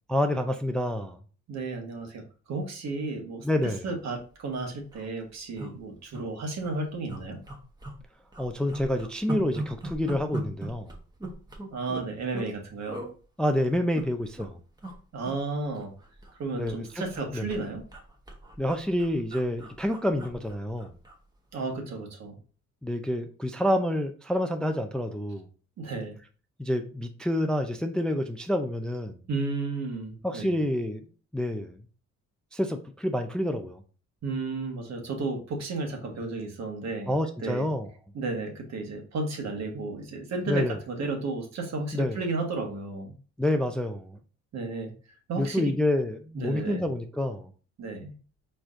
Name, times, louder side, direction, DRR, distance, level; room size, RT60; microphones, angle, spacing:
voice 1, 0.1-1.2 3.4-3.8 8.4-10.9 13.4-14.6 16.5-17.0 17.3-17.5 18.6-20.9 22.8-25.5 26.6-29.2 30.2-31.0 31.3-31.8 32.5-33.8 37.1-37.9 40.5-40.8 41.9-42.2 43.4-44.2 45.4-47.5, left 1 dB, 5° left, 6 dB, 0.4 m, -28 dB
voice 2, 1.5-7.4 11.7-13.0 15.1-15.9 16.4-17.8 21.5-22.4 25.8-26.1 29.3-30.6 34.2-37.1 37.4-37.7 38.1-43.1 44.5-44.9 45.3-45.7 46.3-46.9 47.8-48.1, right 3 dB, 60° right, 3 dB, 1.4 m, -33 dB
sound 1, 4.2-4.3 4.6-4.7 4.8-5.1 5.6-6.2 6.6-6.7 7.1-8.0 8.3-12.5 12.9-13.1 13.7-14.5 14.8-15.0 15.2-16.4 16.7-21.2 21.5-21.7, right 1 dB, 15° right, 1.2 m, -39 dB
4.5 x 4.3 x 2.5 m, 0.37 s
cardioid pair, 90°, 30 cm